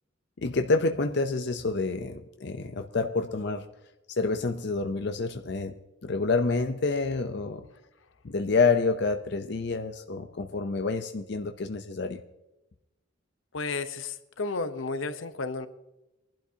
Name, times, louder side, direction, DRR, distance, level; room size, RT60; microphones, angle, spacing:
voice 1, 0.4-3.7 4.1-5.8 6.0-7.7 8.2-12.2, left 3 dB, 60° left, 7 dB, 0.6 m, -28 dB
voice 2, 13.5-15.7, left 3 dB, 85° left, 11 dB, 0.9 m, -32 dB
22.5 x 12.0 x 2.8 m, 0.96 s
head